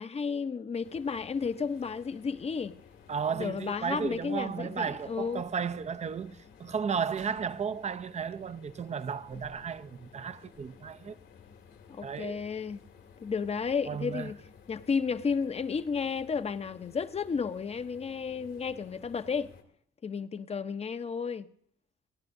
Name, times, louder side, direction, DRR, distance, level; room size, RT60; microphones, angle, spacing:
voice 1, 0.0-2.8 3.3-5.4 11.9-12.8 13.2-14.4 14.7-19.5 20.0-21.5, left 5 dB, 30° left, 0.7 m, -32 dB
sound 1, 0.8-19.6, left 7 dB, 80° left, 2.1 m, -55 dB
voice 2, 3.1-11.2 12.0-12.4 13.9-14.3, right 6 dB, 35° right, 0.6 m, -34 dB
30.0 x 10.5 x 2.6 m
cardioid pair, 90°, 20 cm